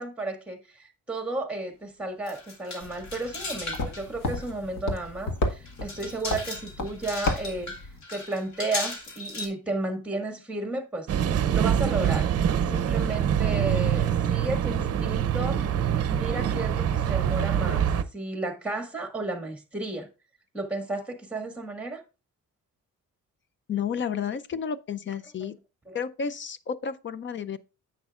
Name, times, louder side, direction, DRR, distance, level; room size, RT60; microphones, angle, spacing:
voice 1, 0.0-7.7 8.1-11.1 11.5-12.3 12.7-15.6 16.0-17.9 18.1-20.1 20.5-22.0 25.9-26.0, right 2 dB, 5° right, 1.7 m, -33 dB
sound 1, 2.3-4.1 4.4-4.5 5.1-5.2 5.7-9.5, left 2 dB, 60° left, 3.0 m, -37 dB
sound 2, 2.8-8.0, left 2 dB, 75° left, 1.7 m, -33 dB
sound 3, 11.1-18.0, right 9 dB, 50° right, 0.6 m, -25 dB
voice 2, 23.7-25.6 25.9-27.6, left 7 dB, 35° left, 0.5 m, -31 dB
10.5 x 8.0 x 2.4 m
cardioid pair, 155°, 32 cm